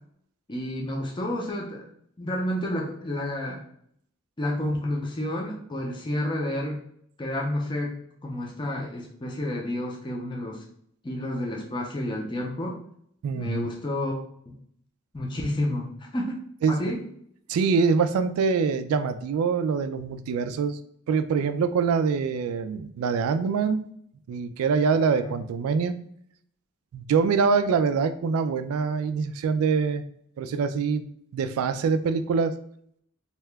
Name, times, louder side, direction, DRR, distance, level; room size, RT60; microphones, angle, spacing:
voice 1, 0.5-1.8 2.2-3.6 4.4-6.8 7.2-8.0 8.2-10.6 11.0-12.8 13.3-14.2 15.1-16.3 16.7-17.0 25.2-25.3, left 1 dB, 20° left, -1 dB, 0.4 m, -30 dB
voice 2, 13.2-13.7 16.6-16.9 17.5-20.8 21.1-23.9 24.3-26.0 26.9-30.0 30.4-31.0 31.3-32.5, right 5 dB, 90° right, 11 dB, 0.3 m, -24 dB
2.8 x 2.2 x 3.3 m, 0.68 s
head